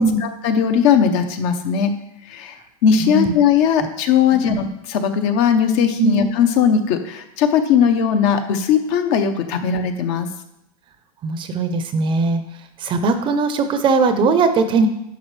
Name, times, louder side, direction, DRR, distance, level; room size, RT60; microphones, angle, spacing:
voice 1, 0.0-1.9 2.3-2.6 2.8-10.3, left 7 dB, 55° left, 7 dB, 0.9 m, -18 dB
voice 2, 3.0-3.3 4.5-4.6 6.0-6.3 11.2-12.4 12.8-14.9, right 4 dB, 25° right, 9 dB, 0.6 m, -19 dB
10.5 x 5.3 x 3.2 m, 0.83 s
supercardioid pair, 140°, 19 cm